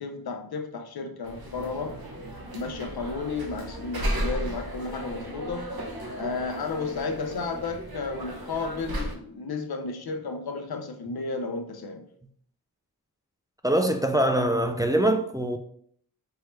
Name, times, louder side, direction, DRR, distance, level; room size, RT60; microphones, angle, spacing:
voice 1, 0.0-1.9 2.5-5.7 6.2-12.0, left 4 dB, 85° left, 0.7 m, -33 dB
sound 1, 1.2-9.1, equal, 80° right, 1.0 m, -35 dB
voice 2, 13.6-15.6, right 1 dB, 10° right, 0.4 m, -23 dB
4.6 x 3.1 x 3.1 m
wide cardioid pair, 65°, 37 cm